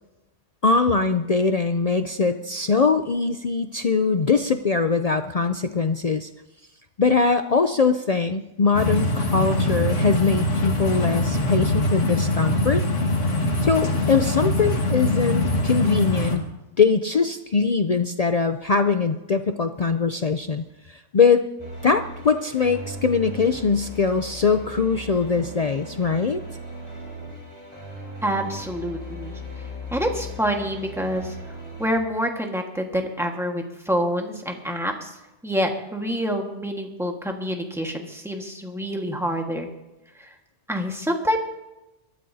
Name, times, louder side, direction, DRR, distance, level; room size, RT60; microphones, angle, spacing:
voice 1, 0.6-6.3 7.0-12.8 13.6-16.4 16.8-21.4 21.8-26.4, left 4 dB, 55° left, 8 dB, 0.4 m, -22 dB
sound 1, 8.7-16.4, left 1 dB, 80° left, 2.1 m, -23 dB
sound 2, 21.6-32.0, left 1 dB, 25° right, 4.1 m, -38 dB
voice 2, 28.2-31.3 31.8-35.1 35.4-39.7 40.2-40.3 40.7-41.4, equal, ahead, 2 dB, 1.5 m, -27 dB
22.5 x 13.0 x 2.8 m, 0.97 s
omnidirectional pair, 1.3 m